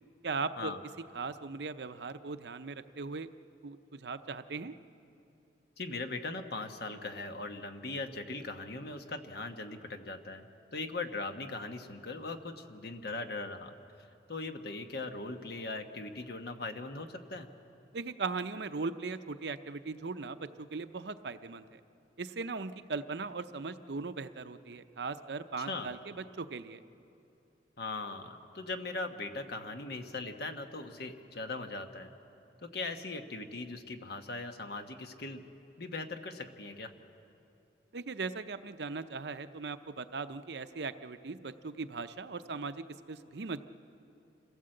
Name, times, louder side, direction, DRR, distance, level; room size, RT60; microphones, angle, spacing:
voice 1, 0.2-0.7 1.1-3.3 3.6-4.7 17.9-21.8 22.2-26.8 37.9-43.6, right 4 dB, 65° right, 10 dB, 0.7 m, -39 dB
voice 2, 5.8-13.7 14.3-17.5 25.6-25.9 27.8-32.1 32.6-35.5 35.8-36.9, left 3 dB, 60° left, 6 dB, 1.2 m, -40 dB
27.0 x 16.0 x 7.8 m, 2.8 s
head